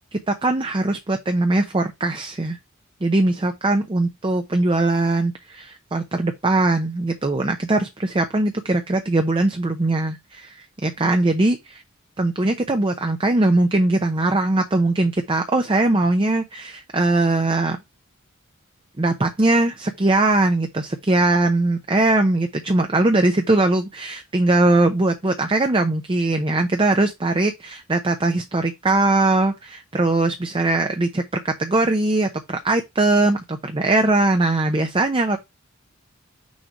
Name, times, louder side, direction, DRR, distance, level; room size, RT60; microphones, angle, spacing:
voice 1, 0.1-2.6 3.0-11.8 12.2-17.8 19.0-35.4, right 2 dB, 25° right, 0.7 m, -20 dB
6.3 x 3.3 x 4.6 m
head